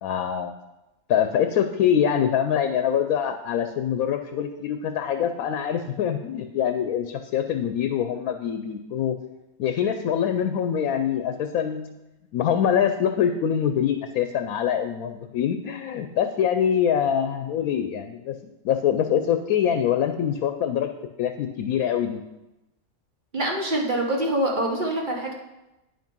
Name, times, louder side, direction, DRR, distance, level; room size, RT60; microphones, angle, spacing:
voice 1, 0.0-0.5 1.1-9.2 9.6-11.9 12.3-18.4 18.6-20.9 21.2-22.2, left 9 dB, 90° left, 8 dB, 1.1 m, -24 dB
voice 2, 23.3-25.3, right 1 dB, 35° right, 0 dB, 1.2 m, -25 dB
9.3 x 5.2 x 5.3 m, 0.97 s
omnidirectional pair, 1.5 m